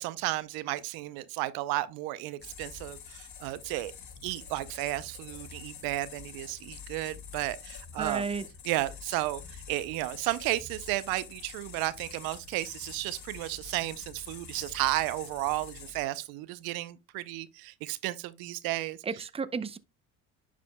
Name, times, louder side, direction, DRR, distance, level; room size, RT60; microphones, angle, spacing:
voice 1, 0.0-3.9 4.2-8.2 8.6-19.2, right 17 dB, 70° right, 0.6 m, -33 dB
sound 1, 2.4-16.0, left 7 dB, 50° left, 2.1 m, -46 dB
voice 2, 8.0-8.5 19.0-19.8, right 5 dB, 15° right, 0.6 m, -32 dB
11.0 x 5.0 x 2.2 m
hypercardioid pair, 70°, 37 cm